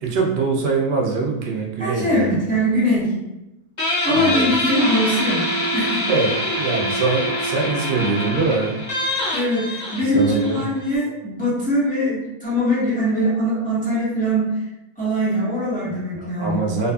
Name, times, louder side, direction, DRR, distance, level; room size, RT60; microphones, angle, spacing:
voice 1, 0.0-2.4 4.1-4.7 6.0-8.8 10.0-10.7 16.2-16.9, right 4 dB, 60° right, 0 dB, 0.7 m, -23 dB
voice 2, 1.8-3.2 4.0-5.5 5.7-6.0 9.3-14.6 15.0-16.6, equal, 5° left, -9 dB, 0.8 m, -21 dB
Guitar, 3.8-11.0, left 1 dB, 35° left, 0.5 m, -25 dB
2.5 x 2.4 x 2.3 m, 0.96 s
omnidirectional pair, 1.5 m